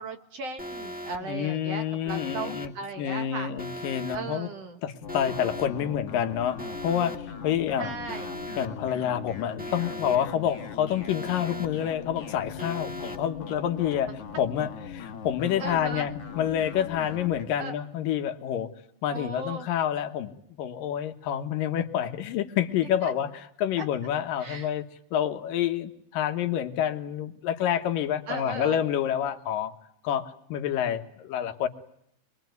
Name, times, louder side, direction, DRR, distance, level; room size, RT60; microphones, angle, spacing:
voice 1, 0.0-3.5 4.1-4.8 7.8-8.3 15.6-16.1 17.6-17.7 19.1-19.7 23.0-23.1 23.8-23.9 24.4-24.7 28.3-28.8, right 4 dB, 55° right, 7 dB, 2.1 m, -37 dB
Alarm, 0.6-1.2 2.1-2.7 3.6-4.2 5.1-5.7 6.6-7.2 8.1-8.7 9.6-10.2 11.1-11.7 12.6-13.2, equal, 10° right, 0.5 m, -38 dB
voice 2, 1.2-2.7 3.0-4.5 4.8-7.9 8.6-18.7 19.0-23.3 23.6-24.8 25.1-29.7 30.0-31.7, left 10 dB, 75° left, 8 dB, 2.9 m, -28 dB
sound 1, 5.0-17.4, left 7 dB, 45° left, 2.8 m, -40 dB
25.5 x 22.5 x 9.3 m, 0.72 s
omnidirectional pair, 4.1 m